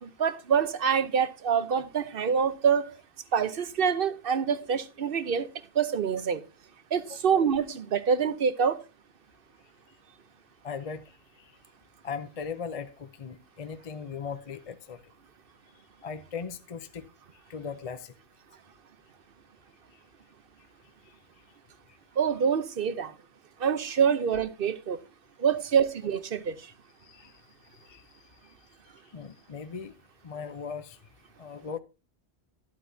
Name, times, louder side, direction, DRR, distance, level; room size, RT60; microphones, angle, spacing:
voice 1, 0.0-2.9 3.3-5.5 5.7-6.4 6.9-8.8 22.2-23.1 23.6-25.0 25.4-26.7, right 7 dB, 55° right, 1.0 m, -26 dB
voice 2, 10.6-11.1 11.4-11.5 12.0-15.0 16.0-17.1 17.5-18.1 27.0-27.3 27.8-28.0 29.1-29.9 30.2-31.0 31.4-31.8, left 6 dB, 40° left, 0.6 m, -38 dB
12.0 x 11.5 x 2.7 m
omnidirectional pair, 1.1 m